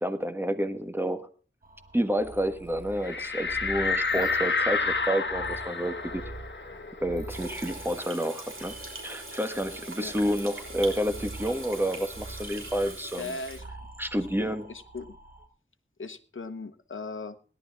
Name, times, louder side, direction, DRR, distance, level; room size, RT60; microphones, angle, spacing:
voice 1, 0.0-1.3 1.9-6.2 7.0-8.7 9.0-13.3 14.0-14.7, equal, 10° right, 8 dB, 1.4 m, -29 dB
sound 1, 1.6-15.5, right 2 dB, 45° right, 1.8 m, -45 dB
sound 2, 3.0-8.2 8.6-8.7 9.0-10.7, left 4 dB, 60° left, 1.4 m, -30 dB
Water tap faucet / Sink (filling or washing), 7.3-13.6, right 2 dB, 85° right, 3.6 m, -42 dB
voice 2, 13.2-13.6 14.2-15.2 16.0-17.4, left 3 dB, 75° left, 7 dB, 1.0 m, -39 dB
17.5 x 11.0 x 3.6 m, 0.38 s
wide cardioid pair, 65°, 20 cm